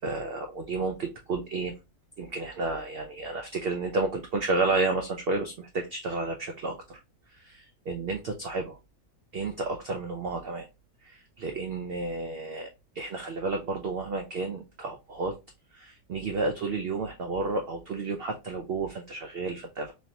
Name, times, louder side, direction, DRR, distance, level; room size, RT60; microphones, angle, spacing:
voice 1, 0.0-1.7 2.2-7.0 7.3-8.8 9.3-10.7 11.0-12.7 13.0-15.4 15.7-19.9, right 3 dB, 85° right, 4 dB, 0.5 m, -31 dB
3.2 x 2.7 x 2.6 m, 0.25 s
omnidirectional pair, 1.5 m